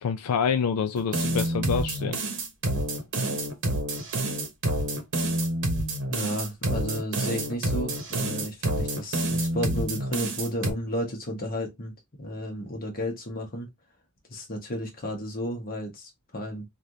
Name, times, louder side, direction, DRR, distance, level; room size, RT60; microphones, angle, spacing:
voice 1, 0.0-2.2, left 6 dB, 85° left, 0.4 m, -27 dB
sound 1, 1.0-10.7, right 1 dB, 55° right, 0.9 m, -28 dB
voice 2, 6.1-11.9 12.2-13.7 14.3-16.6, equal, 40° left, 1.1 m, -32 dB
3.3 x 2.5 x 2.7 m
head